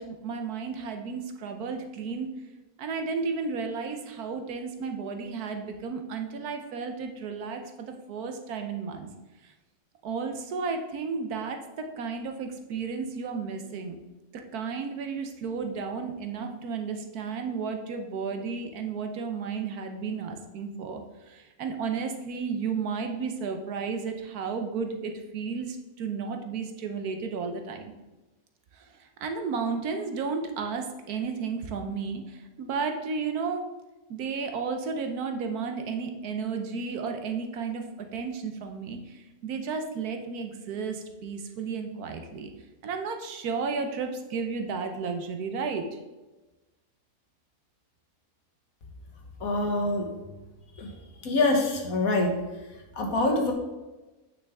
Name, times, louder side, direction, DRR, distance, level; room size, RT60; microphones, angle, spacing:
voice 1, 0.0-2.3 2.8-9.1 9.4-9.5 10.0-14.0 14.5-27.9 28.7-33.7 34.1-42.5 42.8-46.0, right 5 dB, 90° right, 5 dB, 1.4 m, -33 dB
voice 2, 49.4-50.1 50.8-50.9 51.2-52.4 53.0-53.5, left 2 dB, 70° left, 2 dB, 1.6 m, -25 dB
9.0 x 5.8 x 3.5 m, 1.1 s
omnidirectional pair, 1.6 m